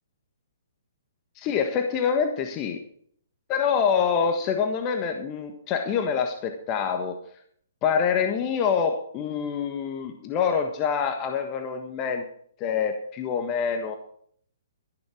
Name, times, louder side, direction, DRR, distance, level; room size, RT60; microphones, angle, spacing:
voice 1, 1.3-2.8 3.5-7.2 7.8-12.2 12.6-14.0, left 6 dB, 30° left, 6 dB, 1.5 m, -26 dB
13.5 x 11.5 x 4.9 m, 0.63 s
hypercardioid pair, 135°, 0 cm